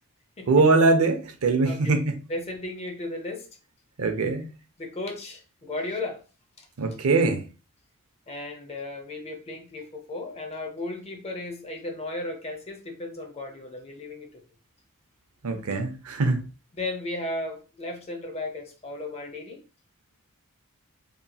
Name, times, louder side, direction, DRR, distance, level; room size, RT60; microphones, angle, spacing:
voice 1, 0.5-2.2 4.0-4.5 6.8-7.4 15.4-16.4, right 3 dB, 70° right, 0.5 m, -22 dB
voice 2, 1.6-2.0 2.3-3.5 4.2-4.3 4.8-6.2 6.6-6.7 8.3-14.4 15.5-15.8 16.7-19.6, left 2 dB, 30° left, 0.5 m, -35 dB
2.9 x 2.7 x 2.2 m
head